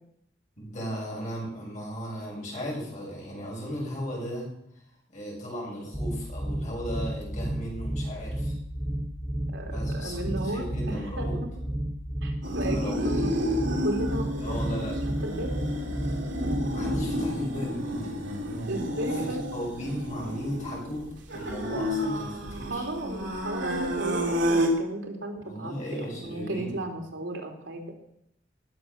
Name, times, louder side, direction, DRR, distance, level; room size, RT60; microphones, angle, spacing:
voice 1, 0.6-4.5 5.1-8.5 9.6-11.4 12.4-13.4 14.4-15.0 16.7-18.1 19.3-22.8 25.4-26.7, equal, 40° left, -3 dB, 6.3 m, -36 dB
sound 1, 5.9-17.0, right 1 dB, ahead, 1.2 m, -31 dB
voice 2, 9.5-11.5 12.2-13.3 13.7-14.6 15.1-15.5 18.7-19.4 22.6-27.9, right 1 dB, 85° right, 2 dB, 2.9 m, -34 dB
sound 2, 12.4-24.7, equal, 70° right, 3.0 m, -31 dB
18.5 x 7.1 x 6.5 m, 0.74 s
head